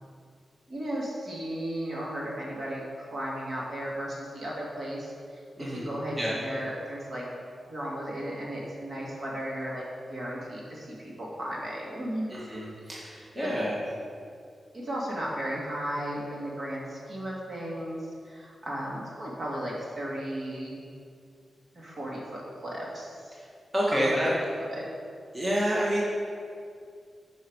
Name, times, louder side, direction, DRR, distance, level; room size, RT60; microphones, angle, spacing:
voice 1, 0.7-7.2 7.7-9.8 10.1-12.3 13.1-13.6 14.7-18.0 18.2-20.7 21.8-23.3 23.9-24.4 24.7-24.8, right 1 dB, 45° right, -4 dB, 2.1 m, -35 dB
voice 2, 5.6-5.9 6.2-6.3 12.3-13.7 23.7-24.3 25.3-26.0, equal, 20° right, -7 dB, 1.6 m, -28 dB
12.0 x 5.6 x 4.7 m, 2.3 s
wide cardioid pair, 150°, 0 cm